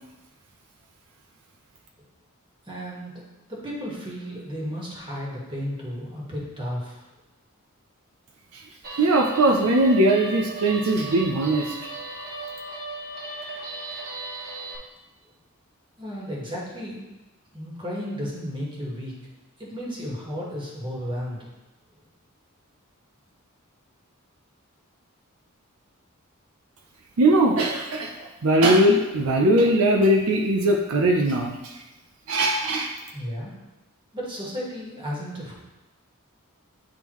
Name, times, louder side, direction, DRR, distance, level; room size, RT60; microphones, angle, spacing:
voice 1, 2.7-3.2 3.5-7.0 16.0-17.1 17.5-19.1 19.6-21.4 33.1-33.5 34.1-35.5, equal, 25° right, -5 dB, 1.6 m, -33 dB
Guitar, 8.8-14.8, right 2 dB, 50° right, 1.2 m, -36 dB
voice 2, 9.0-11.7 27.2-31.7 32.3-32.9, right 1 dB, 75° right, 1 dB, 0.6 m, -20 dB
8.8 x 3.7 x 3.0 m, 1.0 s
head